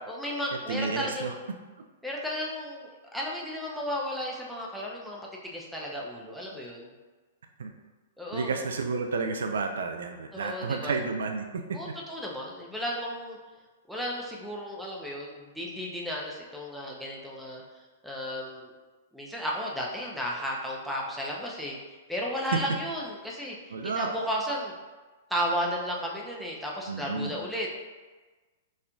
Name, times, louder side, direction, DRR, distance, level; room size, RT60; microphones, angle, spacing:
voice 1, 0.1-1.3 2.0-6.9 8.2-8.5 10.3-10.9 11.7-13.4 13.9-17.6 18.0-18.7 19.1-21.8 22.1-23.6 23.8-24.7 25.3-27.7, equal, ahead, -3 dB, 0.6 m, -34 dB
voice 2, 0.7-1.3 7.6-7.7 8.3-11.6 22.5-22.6 23.7-24.1 26.9-27.4, right 4 dB, 75° right, 5 dB, 0.3 m, -31 dB
4.2 x 2.5 x 2.3 m, 1.3 s
hypercardioid pair, 120°, 0 cm